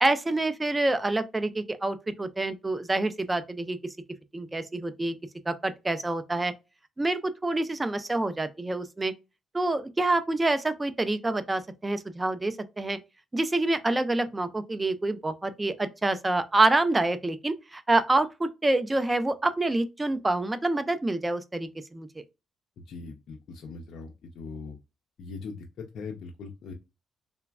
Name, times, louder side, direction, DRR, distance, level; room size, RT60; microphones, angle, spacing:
voice 1, 0.0-3.8 4.3-5.1 5.5-6.5 7.0-9.1 9.5-13.0 13.3-22.1, right 2 dB, 20° right, 0.4 m, -27 dB
voice 2, 22.9-24.8 25.2-26.7, left 4 dB, 70° left, 0.4 m, -40 dB
3.2 x 2.1 x 2.2 m
cardioid pair, 90°, 0 cm